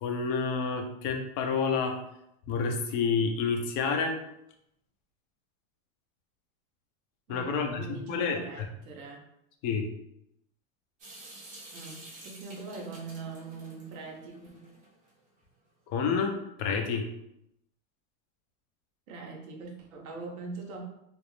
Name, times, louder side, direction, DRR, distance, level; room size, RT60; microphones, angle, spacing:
voice 1, 0.0-2.0 2.5-4.2 7.3-8.7 9.6-9.9 15.9-17.1, left 5 dB, 40° left, 4 dB, 0.5 m, -29 dB
voice 2, 7.3-9.2 11.7-14.7 19.1-20.8, right 4 dB, 80° right, 1 dB, 0.8 m, -42 dB
Water tap faucet / Sink (filling or washing) / Drip, 11.0-15.1, right 2 dB, 20° right, 0.5 m, -49 dB
2.5 x 2.0 x 3.0 m, 0.80 s
supercardioid pair, 130°, 42 cm